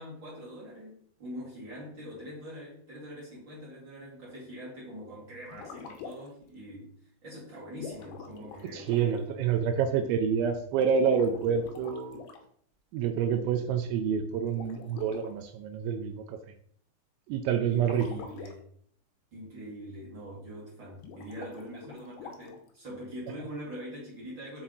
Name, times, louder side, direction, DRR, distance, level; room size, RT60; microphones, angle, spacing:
voice 1, 0.0-6.9 7.2-8.9 17.7-18.7 19.3-24.6, equal, 40° right, -7 dB, 1.7 m, -43 dB
sound 1, 5.5-6.5 7.7-9.2 10.9-12.4 14.5-15.3 17.8-18.5 21.0-22.7, left 6 dB, 85° left, 2.2 m, -45 dB
voice 2, 8.7-12.2 12.9-16.4 17.3-18.1 23.3-23.5, right 7 dB, 80° right, 7 dB, 2.7 m, -28 dB
7.1 x 4.0 x 3.9 m, 0.63 s
omnidirectional pair, 5.6 m